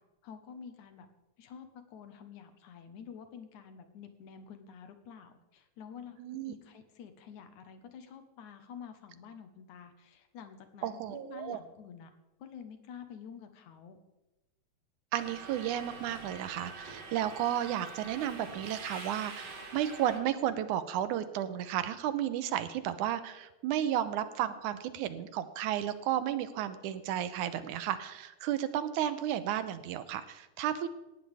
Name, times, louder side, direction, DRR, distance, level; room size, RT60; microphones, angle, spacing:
voice 1, 0.2-1.1 1.4-12.1 12.4-14.0, left 7 dB, 80° left, 8 dB, 2.7 m, -49 dB
voice 2, 6.2-6.5 10.8-11.6 15.1-30.9, right 11 dB, 85° right, 12 dB, 2.3 m, -33 dB
Subway metro underground, 15.2-20.2, right 3 dB, 55° right, 3.2 m, -45 dB
18.5 x 13.5 x 3.5 m, 1.0 s
omnidirectional pair, 3.4 m